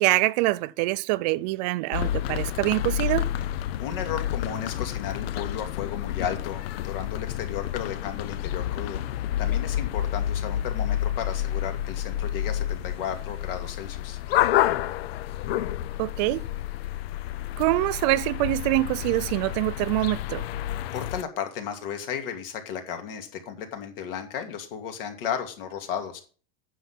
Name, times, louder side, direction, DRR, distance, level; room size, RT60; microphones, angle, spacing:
voice 1, 0.0-3.3 16.0-16.4 17.6-20.4, right 19 dB, 45° right, 0.5 m, -25 dB
sound 1, 1.9-21.2, left 12 dB, 90° left, 0.6 m, -29 dB
voice 2, 3.8-9.0 9.4-14.2 20.9-26.2, left 8 dB, 70° left, 2.5 m, -34 dB
9.1 x 6.4 x 5.8 m
supercardioid pair, 160°, 30 cm